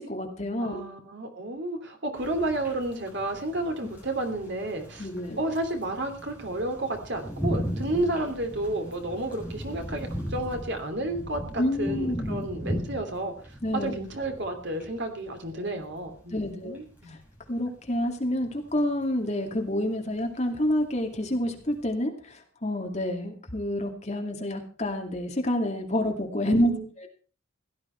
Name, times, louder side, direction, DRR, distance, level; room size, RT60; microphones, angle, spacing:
voice 1, 0.0-0.8 5.0-5.4 11.6-12.5 13.6-13.9 15.6-15.7 16.3-16.8 17.1-17.2 17.5-26.7 27.0-27.1, left 1 dB, 35° left, 2 dB, 2.5 m, -28 dB
voice 2, 0.7-5.1 5.4-13.3 13.7-17.2 26.4-26.8, right 1 dB, 55° right, 4 dB, 3.0 m, -31 dB
sound 1, 2.2-21.9, equal, 10° right, 7.0 m, -38 dB
16.5 x 12.5 x 4.5 m, 0.39 s
head